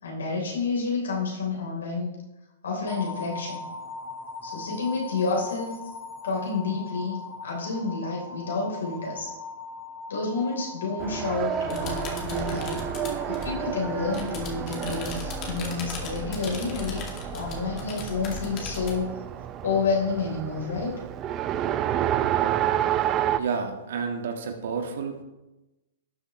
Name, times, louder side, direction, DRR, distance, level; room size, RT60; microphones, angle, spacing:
voice 1, 0.0-2.1 2.6-3.6 4.4-5.8 6.2-9.3 10.1-12.8 13.3-17.0 17.3-19.2 19.6-21.0, left 4 dB, 80° left, -2 dB, 3.5 m, -29 dB
sound 1, 2.9-15.0, left 4 dB, 5° right, 2.3 m, -40 dB
Race car auto racing, 11.0-23.4, right 11 dB, 30° right, 0.5 m, -30 dB
sound 2, 11.7-19.0, left 5 dB, 35° left, 2.2 m, -38 dB
voice 2, 23.4-25.2, right 5 dB, 65° right, 4 dB, 1.5 m, -30 dB
12.5 x 7.1 x 3.1 m, 1.0 s
hypercardioid pair, 120°, 0 cm